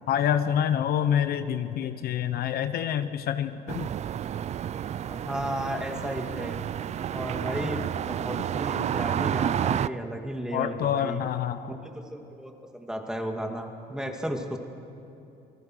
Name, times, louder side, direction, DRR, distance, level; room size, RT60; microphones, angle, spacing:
voice 1, 0.1-3.9 10.5-11.7, left 9 dB, 65° left, 10 dB, 1.0 m, -27 dB
sound 1, 3.7-9.9, right 10 dB, 40° right, 0.4 m, -30 dB
voice 2, 5.1-6.6 7.1-11.2 11.8-14.6, equal, 5° right, 3 dB, 2.5 m, -34 dB
28.5 x 19.5 x 6.4 m, 2.9 s
cardioid pair, 110°, 17 cm